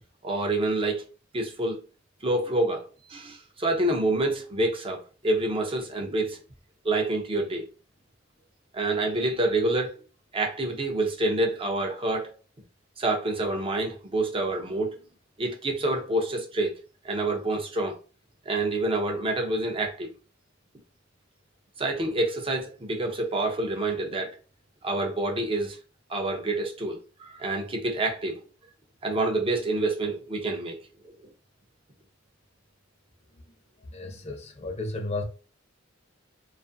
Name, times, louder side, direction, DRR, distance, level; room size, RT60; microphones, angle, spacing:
voice 1, 0.2-1.0 1.3-1.8 2.2-6.4 6.8-7.6 8.7-9.9 10.3-12.3 13.0-15.0 15.4-16.8 17.0-18.0 18.5-20.1 21.8-24.4 24.8-25.8 26.1-28.4 29.0-30.8, right 2 dB, 30° right, 0.5 m, -27 dB
voice 2, 33.9-35.2, left 2 dB, 35° left, 0.6 m, -33 dB
2.5 x 2.4 x 2.5 m
head